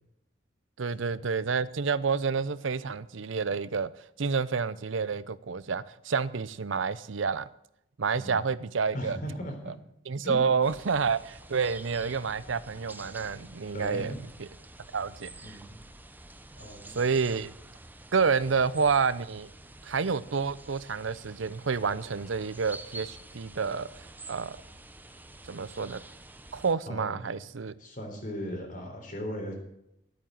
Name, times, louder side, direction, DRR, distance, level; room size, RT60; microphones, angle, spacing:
voice 1, 0.8-3.9 4.2-7.5 8.0-9.2 10.1-14.1 14.9-15.3 16.9-17.5 18.1-19.5 19.8-23.9 24.3-24.6 25.5-26.0 26.5-27.7, right 5 dB, 85° right, 17 dB, 0.6 m, -29 dB
voice 2, 8.9-9.7 10.2-10.4 13.7-14.2 15.4-15.8 16.6-16.9 26.9-27.3 27.8-29.6, equal, 45° left, 3 dB, 3.7 m, -37 dB
sound 1, 10.6-26.8, right 2 dB, 10° right, 0.8 m, -48 dB
13.0 x 8.8 x 7.6 m, 0.80 s
head